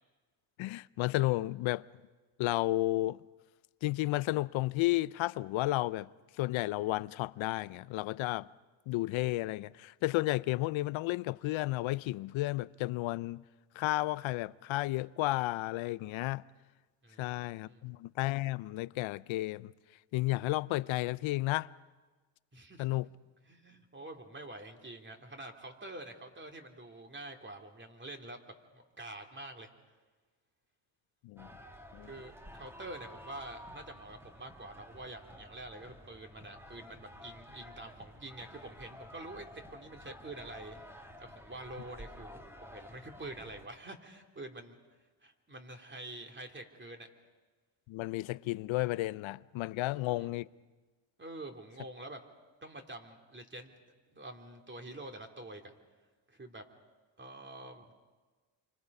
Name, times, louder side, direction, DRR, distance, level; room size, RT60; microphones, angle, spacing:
voice 1, 0.6-1.9 2.4-3.2 3.8-6.1 6.4-8.5 8.9-13.4 13.8-16.4 17.2-19.7 20.1-21.7 22.8-23.1 31.2-31.5 31.9-32.1 47.9-50.4, left 18 dB, 75° left, 0.6 m, -32 dB
voice 2, 17.0-18.0 22.5-22.8 23.5-29.7 32.0-39.4 39.7-44.8 45.2-47.1 49.8-50.3 51.2-52.2 52.6-53.8 54.1-55.7 56.3-56.6 57.2-57.9, right 2 dB, 25° right, 2.9 m, -47 dB
sound 1, 31.4-43.7, left 1 dB, 5° right, 1.8 m, -52 dB
29.0 x 25.0 x 5.5 m
cardioid pair, 95°, 47 cm